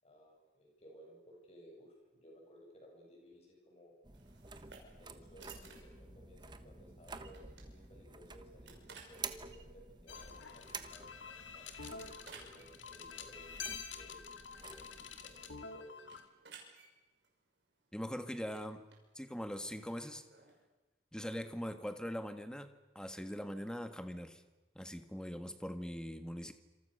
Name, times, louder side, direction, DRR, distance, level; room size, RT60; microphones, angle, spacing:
voice 1, 0.0-3.9 5.0-8.7 9.0-11.7 12.1-13.5 13.9-14.9 15.2-16.0, equal, 35° left, 0 dB, 8.0 m, -59 dB
sound 1, 4.0-15.6, right 4 dB, 25° right, 1.3 m, -51 dB
sound 2, 4.1-20.6, right 5 dB, 70° right, 6.0 m, -60 dB
sound 3, 10.1-16.2, left 6 dB, 80° left, 2.3 m, -48 dB
voice 2, 17.9-18.8 19.1-20.2 21.1-24.4 24.7-26.5, equal, 5° left, 8 dB, 1.5 m, -42 dB
27.5 x 27.0 x 6.6 m, 1.2 s
head